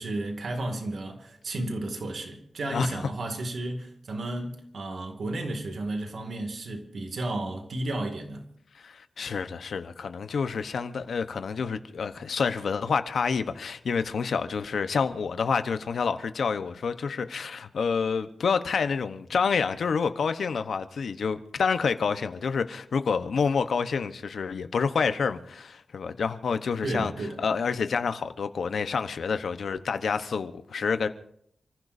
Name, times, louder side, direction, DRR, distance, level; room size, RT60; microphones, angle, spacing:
voice 1, 0.0-8.5 26.8-27.4, right 2 dB, 65° right, 2.3 m, -33 dB
voice 2, 2.7-3.0 8.7-27.1 27.4-31.1, left 5 dB, 80° left, 1.0 m, -28 dB
29.5 x 15.0 x 2.7 m
wide cardioid pair, 160°, 0 cm